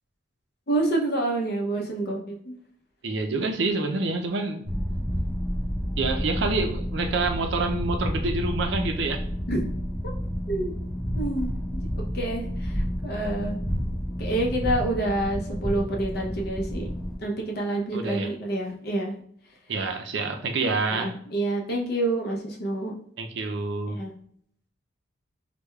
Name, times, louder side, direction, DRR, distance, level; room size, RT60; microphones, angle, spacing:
voice 1, 0.7-2.5 9.5-9.6 10.5-10.7 11.2-12.7 13.0-13.6 14.2-16.9 17.2-19.1 20.9-22.9 23.9-24.1, right 2 dB, 50° left, 0 dB, 0.6 m, -28 dB
voice 2, 3.0-4.7 6.0-9.2 17.9-18.3 19.7-21.1 23.2-24.0, right 3 dB, 65° right, 5 dB, 0.4 m, -27 dB
sound 1, 4.6-17.2, equal, 15° left, 1.4 m, -30 dB
4.6 x 2.2 x 2.3 m, 0.63 s
head